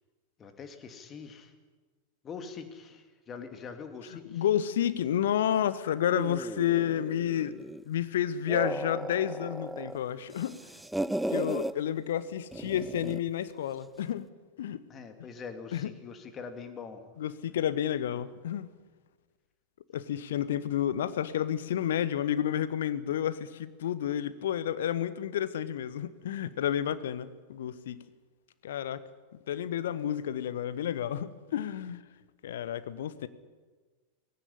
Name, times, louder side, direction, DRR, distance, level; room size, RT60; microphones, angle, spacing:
voice 1, 0.4-1.5 2.2-4.4 14.9-17.1, left 5 dB, 25° left, 7 dB, 2.5 m, -44 dB
voice 2, 4.3-7.5 7.8-10.6 11.3-14.3 14.6-14.8 15.7-15.9 17.2-18.7 19.9-28.0 28.6-29.0 29.5-32.0 32.4-33.3, left 10 dB, 60° left, 15 dB, 1.1 m, -30 dB
sound 1, 6.1-7.9 8.3-10.0 10.3-11.7 12.5-13.3, right 1 dB, 5° right, 0.5 m, -35 dB
18.5 x 16.5 x 9.9 m, 1.3 s
figure-of-eight pair, 90°, 0 cm